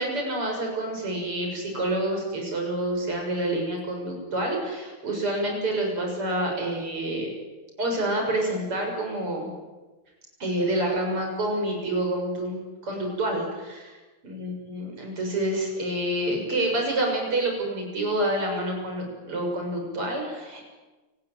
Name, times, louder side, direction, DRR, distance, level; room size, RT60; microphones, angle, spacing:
voice 1, 0.0-7.3 7.8-9.5 10.4-14.0 14.2-20.6, right 1 dB, 90° right, 1 dB, 8.0 m, -28 dB
28.5 x 20.0 x 9.3 m, 1.2 s
omnidirectional pair, 2.4 m